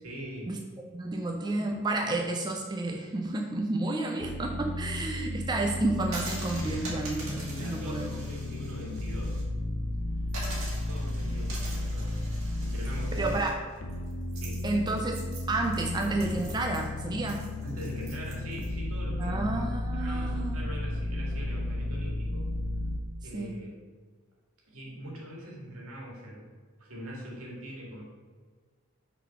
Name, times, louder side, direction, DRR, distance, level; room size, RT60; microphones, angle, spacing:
voice 1, 0.0-0.6 7.4-9.4 10.9-12.1 12.6-13.3 14.3-14.6 17.6-19.4 19.9-22.5 23.2-23.7 24.7-26.5 26.8-28.0, right 1 dB, 85° right, -3 dB, 2.1 m, -42 dB
voice 2, 0.9-8.1 13.2-13.5 14.6-17.4 19.2-20.6 23.3-23.6, right 2 dB, 20° right, 2 dB, 0.4 m, -31 dB
sound 1, 4.2-13.4 13.8-23.0, left 1 dB, 60° left, 0.6 m, -33 dB
sound 2, 6.0-9.4 9.8-9.9 10.3-18.7, right 2 dB, 65° right, 2.1 m, -44 dB
6.1 x 4.1 x 5.8 m, 1.5 s
head